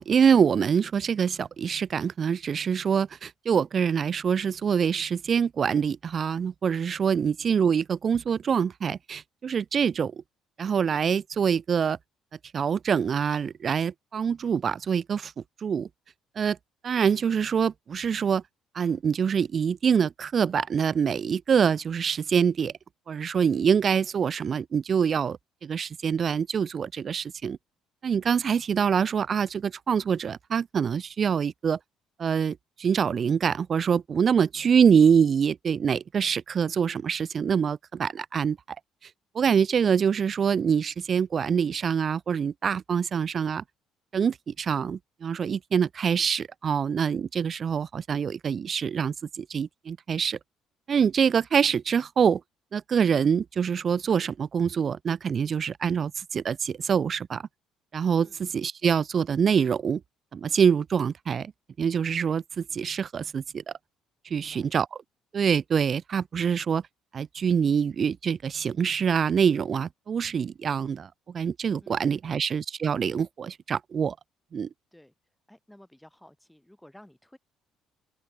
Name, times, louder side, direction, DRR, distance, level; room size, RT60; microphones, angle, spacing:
voice 1, 0.0-10.1 10.6-12.0 12.5-15.3 15.6-15.9 16.4-16.6 16.8-18.4 18.7-22.7 23.1-27.6 28.0-31.8 32.2-38.6 39.3-43.6 44.1-50.4 50.9-52.4 52.7-57.4 57.9-60.0 60.3-61.5 61.8-63.6 64.3-64.9 65.3-66.8 67.1-74.2 74.5-74.7, right 7 dB, 45° right, 0.6 m, -25 dB
voice 2, 34.2-34.7 58.2-58.4 64.3-64.8 71.8-72.4 74.9-75.1 75.5-77.4, left 1 dB, 5° left, 3.7 m, -55 dB
open air
cardioid pair, 95°, 0 cm